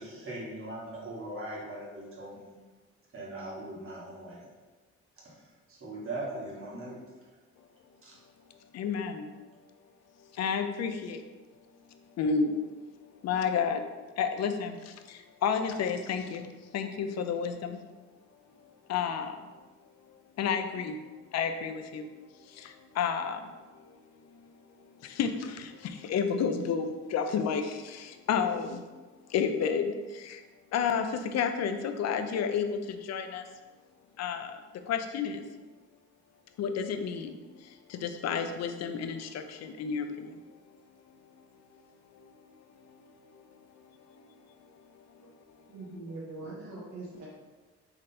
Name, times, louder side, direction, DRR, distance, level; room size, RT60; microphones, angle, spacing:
voice 1, 0.0-2.5 3.1-4.4 5.2-5.3 5.7-7.0 8.0-8.1, right 1 dB, 45° right, -5 dB, 1.5 m, -40 dB
voice 2, 8.7-9.3 10.3-11.2 12.2-12.5 13.2-13.8 14.2-17.8 18.9-19.5 20.4-21.0 21.3-23.5 23.9-24.0 25.0-28.8 29.3-30.4 30.7-33.5 34.2-34.6 34.9-35.4 36.6-40.4 42.1-42.3 42.8-42.9 43.3-43.4, left 6 dB, 60° left, 7 dB, 0.4 m, -31 dB
voice 3, 45.7-47.3, right 2 dB, 65° right, -7 dB, 0.9 m, -42 dB
3.8 x 3.3 x 2.8 m, 1.3 s
cardioid pair, 90°, 30 cm